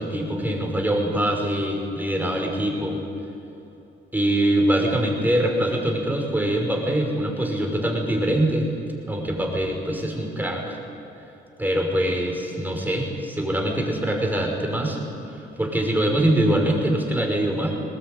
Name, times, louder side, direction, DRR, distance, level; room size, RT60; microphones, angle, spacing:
voice 1, 0.0-3.0 4.1-8.7 9.1-10.8 11.6-17.7, right 1 dB, 10° right, 1 dB, 5.9 m, -23 dB
21.5 x 19.5 x 9.4 m, 2.9 s
cardioid pair, 90°, 20 cm